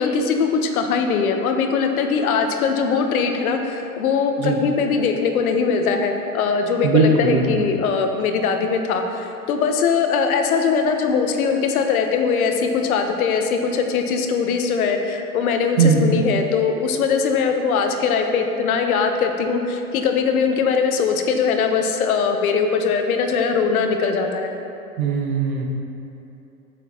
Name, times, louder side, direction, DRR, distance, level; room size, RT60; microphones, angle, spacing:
voice 1, 0.0-24.5, left 5 dB, 70° left, 5 dB, 1.0 m, -21 dB
voice 2, 6.8-7.6 15.8-16.1 25.0-25.7, right 4 dB, 70° right, 2 dB, 1.3 m, -19 dB
9.2 x 8.0 x 2.9 m, 2.9 s
hypercardioid pair, 100°, 45 cm